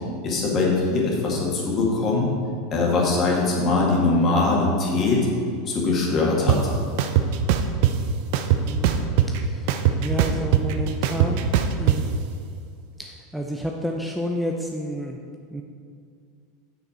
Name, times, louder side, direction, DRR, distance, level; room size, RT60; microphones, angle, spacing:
voice 1, 0.2-2.3 2.7-5.2 5.7-6.6, left 3 dB, 35° left, -2 dB, 2.0 m, -21 dB
sound 1, 6.5-6.6 7.0-7.9 8.3-9.4 9.7-12.0, right 10 dB, 60° right, 0.5 m, -20 dB
voice 2, 8.6-9.7 10.0-11.5 11.8-12.1 13.0-15.2 15.5-15.6, equal, ahead, 0 dB, 0.6 m, -30 dB
7.3 x 6.5 x 4.4 m, 2.3 s
figure-of-eight pair, 85°, 0 cm